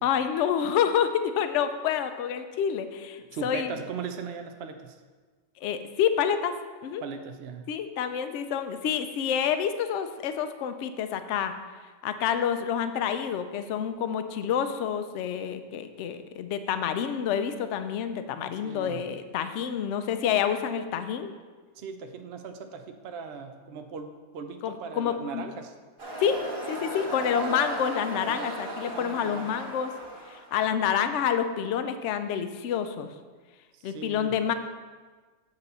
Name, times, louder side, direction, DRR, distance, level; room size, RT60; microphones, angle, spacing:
voice 1, 0.0-3.7 5.6-6.5 6.8-7.0 7.7-11.5 12.0-21.3 24.6-25.5 26.2-26.4 26.7-29.9 30.3-33.1 33.8-34.5, left 8 dB, 65° left, 9 dB, 0.8 m, -28 dB
voice 2, 3.3-5.0 7.0-7.7 18.6-19.0 21.8-25.7 28.3-28.4 28.8-29.5 33.8-34.4, right 5 dB, 60° right, 6 dB, 0.7 m, -39 dB
sound 1, 26.0-30.8, right 1 dB, 40° right, 2.0 m, -36 dB
8.2 x 4.1 x 6.7 m, 1.4 s
omnidirectional pair, 1.5 m